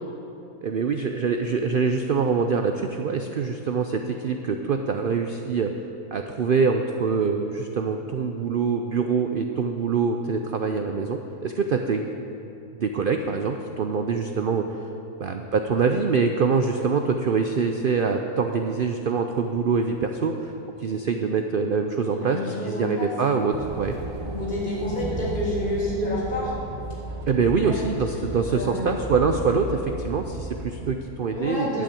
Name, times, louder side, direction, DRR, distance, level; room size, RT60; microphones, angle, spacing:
voice 1, 0.6-5.7 6.1-12.1 12.8-14.7 15.2-20.5 20.8-23.9 27.3-31.7, right 5 dB, 85° right, 5 dB, 0.4 m, -24 dB
voice 2, 22.1-23.1 24.3-26.5 27.6-27.8 28.5-29.3 31.3-31.8, left 1 dB, 65° left, -7 dB, 3.8 m, -29 dB
sound 1, 23.5-30.9, right 2 dB, 30° right, 0.6 m, -34 dB
11.0 x 6.3 x 8.4 m, 2.8 s
omnidirectional pair, 1.6 m